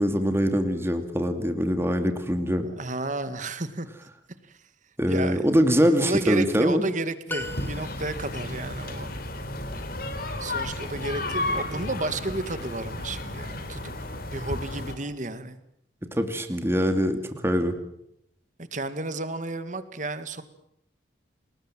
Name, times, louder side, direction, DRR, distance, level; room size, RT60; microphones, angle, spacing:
voice 1, 0.0-2.7 5.0-6.8 16.2-17.7, equal, 15° right, 7 dB, 2.5 m, -23 dB
voice 2, 2.6-3.9 4.5-4.6 5.1-5.5 6.0-9.3 10.4-13.9 14.3-15.6 18.6-20.4, right 2 dB, 40° right, 11 dB, 2.1 m, -32 dB
sound 1, 7.3-8.4, left 2 dB, 10° left, 1.8 m, -36 dB
sound 2, 7.4-15.0, left 1 dB, 50° left, 3.7 m, -33 dB
29.0 x 20.0 x 7.6 m, 0.76 s
head